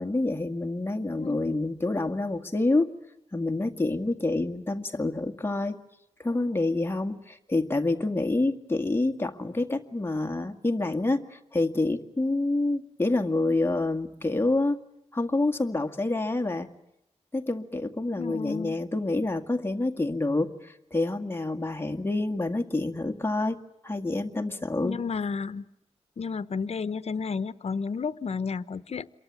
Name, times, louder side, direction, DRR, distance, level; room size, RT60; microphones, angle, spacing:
voice 1, 0.0-2.9 3.3-5.8 6.2-14.8 15.1-16.7 17.3-23.6 23.8-25.0, left 2 dB, 20° left, 4 dB, 2.0 m, -27 dB
voice 2, 1.1-1.5 18.2-18.8 24.8-25.6 26.2-29.1, left 5 dB, 65° left, 15 dB, 1.0 m, -32 dB
28.0 x 23.0 x 8.4 m, 0.83 s
wide cardioid pair, 100°, 12 cm